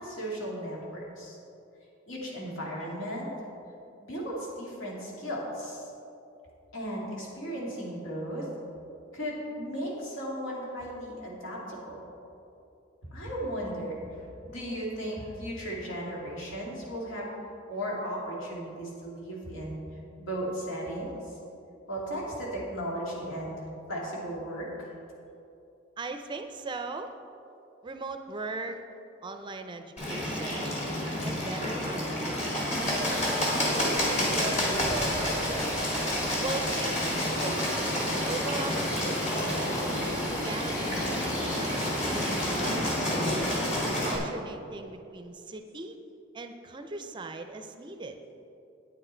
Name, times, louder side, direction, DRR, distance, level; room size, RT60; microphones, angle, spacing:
voice 1, 0.0-1.4 2.1-3.3 4.0-5.9 6.7-8.5 9.1-12.0 13.1-14.2 14.4-17.3 17.7-19.8 20.2-21.4 21.9-24.9, equal, 85° left, -4 dB, 2.4 m, -36 dB
voice 2, 26.0-27.1 27.8-28.8 29.2-30.8 31.2-36.0 36.4-38.0 38.2-39.5 40.4-43.4 44.0-46.0 46.3-48.2, right 3 dB, 25° right, 7 dB, 0.5 m, -39 dB
Bird, 30.0-44.2, left 1 dB, 35° left, 2.0 m, -29 dB
sound 1, 32.8-42.4, left 1 dB, 15° left, 1.3 m, -40 dB
9.0 x 8.8 x 4.4 m, 2.7 s
head